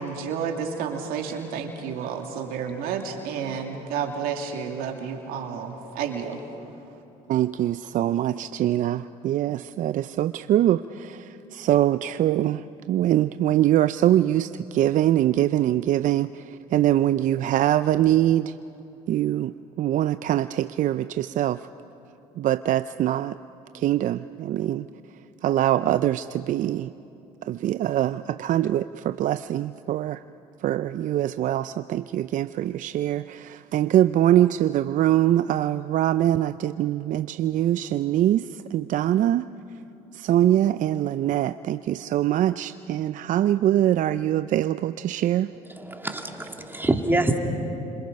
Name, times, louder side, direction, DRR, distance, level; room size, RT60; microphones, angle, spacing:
voice 1, 0.0-6.4, right 6 dB, 75° right, 3 dB, 2.5 m, -31 dB
voice 2, 7.3-12.6 12.9-16.4 16.7-18.5 19.1-21.6 22.4-23.4 23.7-24.8 25.4-26.9 27.5-30.2 30.6-39.5 40.1-45.5, right 12 dB, 60° right, 13 dB, 0.5 m, -23 dB
voice 3, 45.7-47.4, right 2 dB, 15° right, 3 dB, 2.5 m, -25 dB
29.0 x 26.5 x 5.3 m, 2.8 s
supercardioid pair, 70°, 15 cm